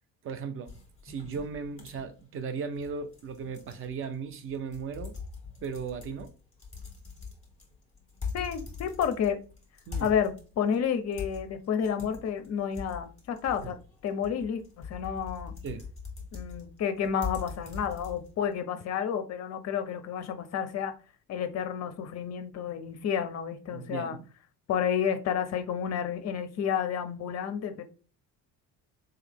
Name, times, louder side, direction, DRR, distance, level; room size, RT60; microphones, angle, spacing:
voice 1, 0.2-0.8 1.0-5.2 5.6-6.3 9.9-10.1 13.6-13.7 15.6-15.9 23.7-24.2, right 5 dB, 30° right, 0.4 m, -36 dB
sound 1, 0.7-18.6, left 5 dB, 15° left, 1.8 m, -43 dB
voice 2, 8.3-9.4 10.0-13.8 14.0-15.5 16.3-20.9 21.3-24.2 24.7-27.8, left 8 dB, 35° left, 0.6 m, -30 dB
3.2 x 2.9 x 3.7 m
figure-of-eight pair, 50°, 49 cm